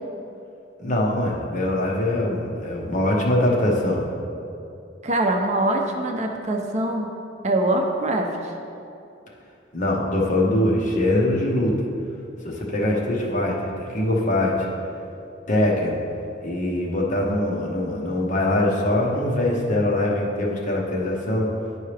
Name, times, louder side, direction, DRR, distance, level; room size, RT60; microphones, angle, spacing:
voice 1, 0.8-4.0 9.7-11.8 12.4-14.7 15.5-16.0 16.4-21.5, left 1 dB, 45° left, -2 dB, 1.0 m, -22 dB
voice 2, 5.0-7.1 7.4-8.3, right 1 dB, 40° right, 2 dB, 0.6 m, -23 dB
10.5 x 4.6 x 3.3 m, 2.6 s
head